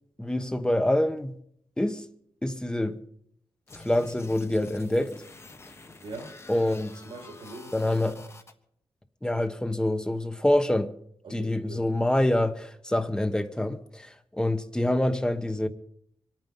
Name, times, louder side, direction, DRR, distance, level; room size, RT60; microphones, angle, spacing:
voice 1, 0.2-1.3 1.8-2.0 2.4-3.0 3.7-5.1 6.5-6.9 7.7-8.2 9.2-10.9 11.3-15.7, left 1 dB, 10° left, 1.1 m, -26 dB
sound 1, 3.7-8.5, left 3 dB, 30° left, 1.3 m, -48 dB
voice 2, 6.0-6.3 6.9-8.0 11.2-11.9, right 2 dB, 70° right, 4.1 m, -42 dB
25.0 x 9.2 x 5.5 m
wide cardioid pair, 115°, 9 cm